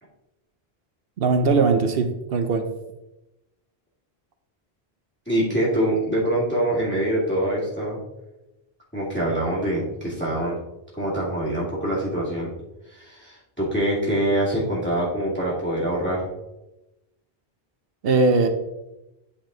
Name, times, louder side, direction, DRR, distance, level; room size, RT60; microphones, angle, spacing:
voice 1, 1.2-2.7 18.0-18.5, right 4 dB, 70° right, 8 dB, 0.8 m, -20 dB
voice 2, 5.3-8.0 8.9-10.6 10.9-12.5 12.9-16.3, right 1 dB, 10° left, -7 dB, 2.2 m, -24 dB
8.6 x 4.5 x 3.8 m, 0.96 s
omnidirectional pair, 1.1 m